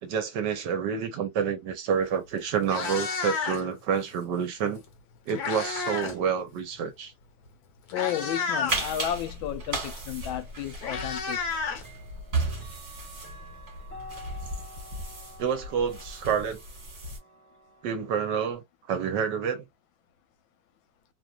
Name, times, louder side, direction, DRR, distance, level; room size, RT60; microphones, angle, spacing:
voice 1, 0.0-4.8 5.3-7.1 15.4-16.6 17.8-19.6, right 7 dB, 70° right, 1.2 m, -28 dB
Meow, 2.0-2.2 2.5-3.8 4.9-6.2 6.5-6.8 7.5-7.6 7.9-8.8 10.1-10.2 10.5-12.4, left 5 dB, 60° left, 1.2 m, -31 dB
voice 2, 7.9-11.4, left 11 dB, 80° left, 1.4 m, -32 dB
sound 1, 8.7-17.2, right 2 dB, 40° right, 1.5 m, -35 dB
Clock, 10.4-10.5 11.8-18.5, left 1 dB, 10° left, 0.6 m, -49 dB
3.2 x 2.4 x 2.3 m
omnidirectional pair, 2.2 m